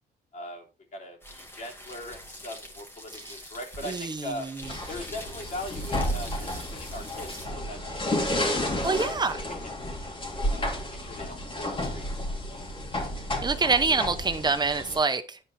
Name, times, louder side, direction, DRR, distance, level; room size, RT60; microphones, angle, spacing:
voice 1, 0.3-0.6 0.9-4.5 4.9-7.8 8.1-8.3 8.8-9.0 10.5-12.1 12.5-12.6, left 1 dB, 45° left, 0 dB, 3.2 m, -40 dB
sound 1, 1.2-7.5, equal, 10° left, 2.2 m, -45 dB
voice 2, 3.8-4.7 8.8-9.4 13.4-15.4, right 4 dB, 25° right, 10 dB, 0.8 m, -26 dB
sound 2, 4.6-15.0, left 1 dB, 30° left, 2.7 m, -31 dB
11.0 x 4.5 x 4.2 m, 0.33 s
cardioid pair, 125°, 18 cm